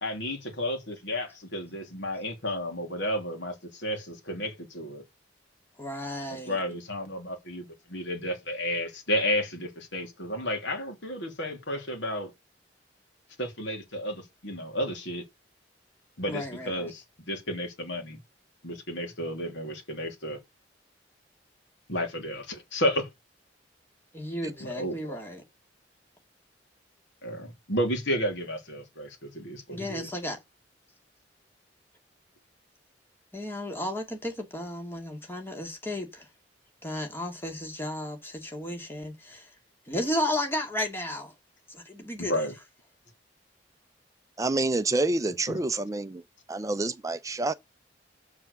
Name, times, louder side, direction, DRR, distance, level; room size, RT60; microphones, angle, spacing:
voice 1, 0.0-5.0 6.3-12.3 13.4-15.2 16.2-18.2 18.6-20.4 21.9-23.1 24.6-25.2 27.2-30.1 42.2-42.5 45.5-45.6, equal, 80° left, 3.0 m, -32 dB
voice 2, 5.8-6.6 16.3-16.9 24.1-25.4 29.7-30.4 33.3-36.3 36.8-39.5 39.9-41.3 41.7-42.3, left 1 dB, 15° left, 2.3 m, -33 dB
voice 3, 44.4-46.2 46.5-47.5, right 2 dB, 20° right, 0.5 m, -27 dB
7.2 x 7.0 x 6.6 m
head